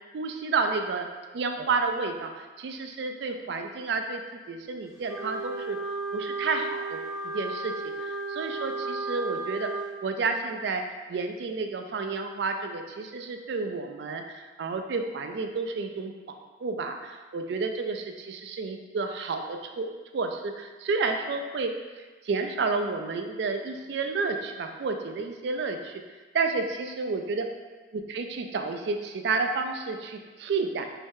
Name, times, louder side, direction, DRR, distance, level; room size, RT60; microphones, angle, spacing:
voice 1, 0.1-1.1 1.3-5.8 6.1-7.7 8.0-9.7 10.0-10.8 11.1-16.1 16.6-19.9 20.1-21.7 22.2-26.0 26.3-27.4 27.9-30.9, right 4 dB, 65° right, 5 dB, 0.3 m, -30 dB
Wind instrument woodwind instrument, 5.0-9.9, right 3 dB, 15° right, 0.7 m, -34 dB
3.1 x 2.7 x 3.6 m, 1.3 s
head